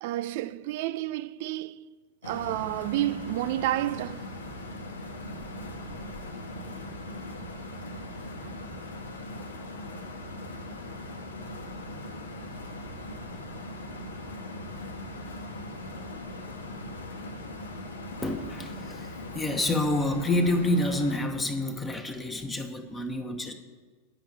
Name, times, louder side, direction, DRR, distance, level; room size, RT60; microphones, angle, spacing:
voice 1, 0.0-1.9 2.2-4.4 8.4-8.6, right 14 dB, 50° right, 0.4 m, -30 dB
sound 1, 2.2-21.2, left 1 dB, 75° left, 1.1 m, -39 dB
voice 2, 18.2-23.5, left 1 dB, 15° left, 0.9 m, -28 dB
10.0 x 5.7 x 8.3 m
figure-of-eight pair, 90°, 0 cm